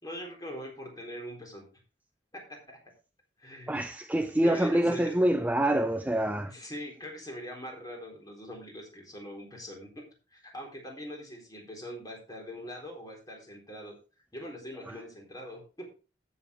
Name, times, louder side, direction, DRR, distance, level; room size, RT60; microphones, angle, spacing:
voice 1, 0.0-1.7 2.3-2.8 3.4-3.8 4.4-5.1 6.5-9.9 10.3-13.9 14.3-15.9, equal, 20° left, 3.9 m, -42 dB
voice 2, 3.7-6.5 14.9-15.0, right 1 dB, 10° right, 0.4 m, -26 dB
14.0 x 7.0 x 3.4 m
head